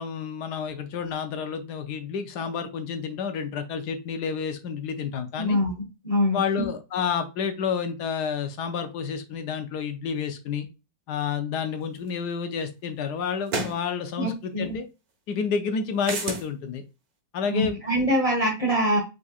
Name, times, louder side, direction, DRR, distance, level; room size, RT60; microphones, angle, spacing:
voice 1, 0.0-5.6 6.3-10.7 11.1-14.9 15.3-16.8 17.3-17.8, left 6 dB, 70° left, 8 dB, 1.2 m, -30 dB
voice 2, 5.4-5.7 6.0-6.7 14.2-14.8 17.4-19.0, equal, 25° left, -1 dB, 1.1 m, -24 dB
sound 1, 12.1-12.2 13.5-13.8 16.0-16.5, right 3 dB, 55° right, 1.6 m, -29 dB
5.0 x 3.7 x 2.3 m, 0.28 s
omnidirectional pair, 2.0 m